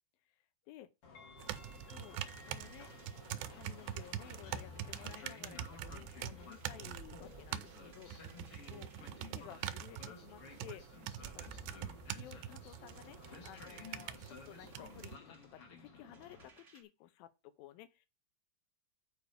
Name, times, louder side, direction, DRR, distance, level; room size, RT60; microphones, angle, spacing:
Train, 1.0-16.5, left 4 dB, 50° left, 1.9 m, -55 dB
sound 1, 1.4-15.2, right 11 dB, 80° right, 2.3 m, -45 dB
sound 2, 1.5-10.5 11.1-16.8, right 1 dB, 65° right, 0.7 m, -58 dB
voice 1, 1.8-2.9 3.5-8.9 9.3-11.1 11.3-11.5 12.1-18.1, left 13 dB, 85° left, 2.5 m, -55 dB
7.0 x 4.7 x 6.4 m
omnidirectional pair, 4.2 m